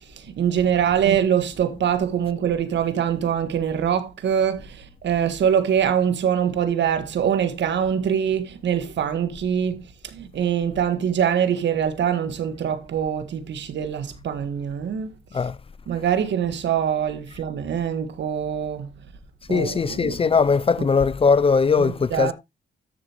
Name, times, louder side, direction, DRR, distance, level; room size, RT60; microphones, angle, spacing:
voice 1, 0.4-4.8 5.0-9.8 10.1-15.1 15.9-18.9 19.5-20.2 20.8-20.9 21.8-22.3, right 8 dB, 65° right, 1.6 m, -23 dB
voice 2, 19.5-22.3, left 5 dB, 30° left, 0.5 m, -20 dB
13.0 x 6.8 x 3.0 m
cardioid pair, 90°, 20 cm